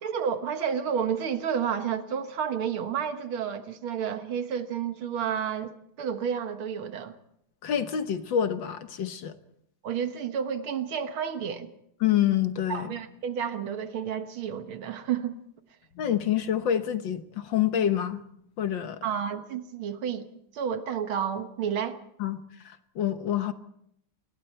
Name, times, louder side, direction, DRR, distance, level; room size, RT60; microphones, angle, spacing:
voice 1, 0.0-7.2 9.8-11.7 12.7-15.3 19.0-20.3 20.5-22.0, right 8 dB, 75° right, 2.2 m, -30 dB
voice 2, 7.6-9.3 12.0-12.9 16.0-18.2 18.6-19.0 22.2-23.5, left 10 dB, 65° left, 1.8 m, -27 dB
29.5 x 21.0 x 4.5 m
omnidirectional pair, 2.4 m